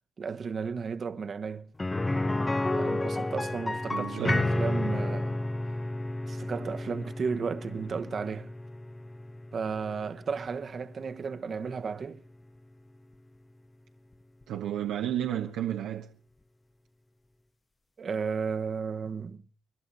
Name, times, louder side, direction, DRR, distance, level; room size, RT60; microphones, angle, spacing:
voice 1, 0.2-1.7 2.7-5.4 6.3-8.5 9.5-12.2 18.0-19.5, right 5 dB, 45° right, 1.2 m, -34 dB
sound 1, 1.8-11.6 11.9-12.0 14.4-14.5, left 2 dB, 20° left, 0.8 m, -31 dB
voice 2, 3.9-4.5 14.5-16.1, right 11 dB, 85° right, 1.4 m, -32 dB
29.5 x 11.5 x 4.1 m
cardioid pair, 90°, 0 cm